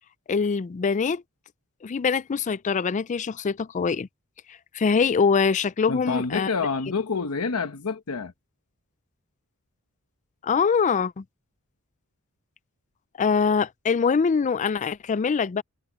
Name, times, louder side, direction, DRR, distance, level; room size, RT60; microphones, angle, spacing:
voice 1, 0.3-1.2 1.8-4.1 4.7-6.5 10.4-11.2 13.2-15.6, left 5 dB, 35° left, 0.4 m, -23 dB
voice 2, 5.9-8.3, left 4 dB, 85° left, 1.0 m, -28 dB
head